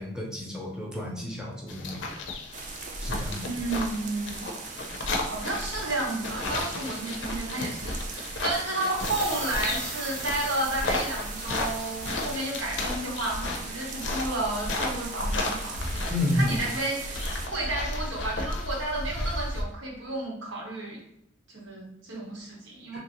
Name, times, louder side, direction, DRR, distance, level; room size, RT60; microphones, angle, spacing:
voice 1, 0.0-2.0 3.0-3.5 16.1-16.6 22.9-23.0, left 1 dB, 5° right, -3 dB, 0.6 m, -30 dB
sound 1, 1.7-19.6, left 2 dB, 65° left, 0.5 m, -33 dB
sound 2, 2.5-17.5, right 5 dB, 40° right, 0.4 m, -40 dB
voice 2, 3.4-4.5 5.2-16.0 16.4-21.0 21.5-23.0, right 2 dB, 85° right, -3 dB, 1.1 m, -32 dB
sound 3, 8.8-12.5, right 2 dB, 65° right, 0.9 m, -40 dB
2.9 x 2.5 x 2.9 m, 0.82 s
head